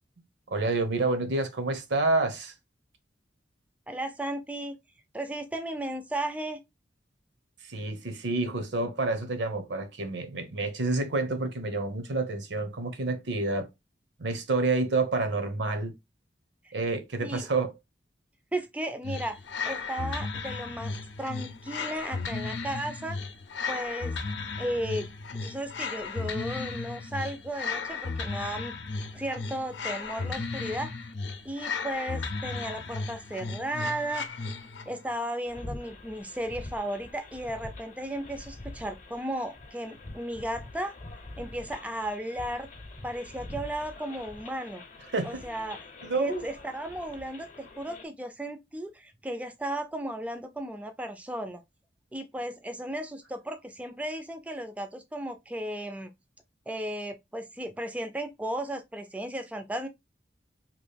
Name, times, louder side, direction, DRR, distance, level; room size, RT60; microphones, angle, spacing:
voice 1, 0.5-2.5 7.7-13.7 14.2-15.9 16.7-17.7 45.1-45.4 46.0-46.4, right 3 dB, 80° right, 0.8 m, -28 dB
voice 2, 3.9-4.8 5.1-6.6 16.6-16.7 17.2-17.5 18.5-19.4 19.7-23.2 23.7-24.1 24.6-25.1 25.4-28.7 29.1-31.0 31.4-34.3 34.9-40.9 41.4-42.7 43.0-44.8 45.2-45.8 46.1-51.6 52.1-56.1 56.7-59.9, right 1 dB, 10° right, 0.3 m, -35 dB
sound 1, 19.0-35.0, left 4 dB, 80° left, 0.6 m, -35 dB
sound 2, 35.4-48.0, left 2 dB, 45° left, 0.7 m, -45 dB
3.0 x 2.4 x 3.2 m
head